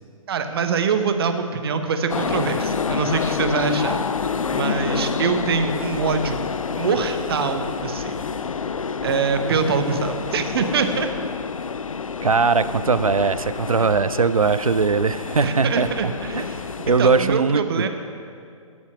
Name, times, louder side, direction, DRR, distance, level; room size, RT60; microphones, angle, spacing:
voice 1, 0.3-4.0 4.5-6.4 6.8-8.2 9.0-11.1 13.8-13.9 15.4-16.7 17.0-17.9, right 5 dB, 45° right, 8 dB, 0.9 m, -24 dB
sound 1, 2.1-17.4, left 5 dB, 75° left, 0.4 m, -28 dB
voice 2, 12.2-16.5 16.9-17.9, right 4 dB, 85° right, 14 dB, 0.5 m, -20 dB
13.5 x 5.6 x 5.9 m, 2.3 s
figure-of-eight pair, 125°, 18 cm